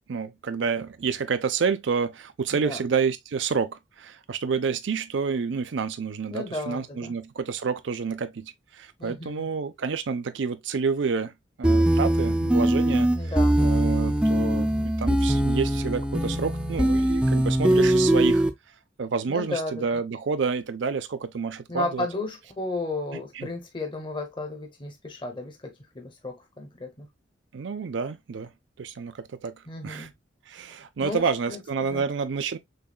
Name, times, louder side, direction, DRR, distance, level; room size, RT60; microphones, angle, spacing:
voice 1, 0.1-11.3 11.6-13.1 13.6-18.4 19.0-22.1 23.4-23.5 27.5-28.5 28.8-29.6 29.8-30.1 30.5-32.6, right 5 dB, 70° right, 0.5 m, -29 dB
voice 2, 2.5-2.8 6.3-7.1 9.0-9.5 13.1-13.6 19.3-20.0 21.7-27.1 29.7-30.1 31.0-31.6 31.9-32.1, left 2 dB, 25° left, 0.8 m, -34 dB
sound 1, 11.6-18.5, right 1 dB, 5° right, 0.4 m, -22 dB
6.5 x 2.3 x 2.3 m
head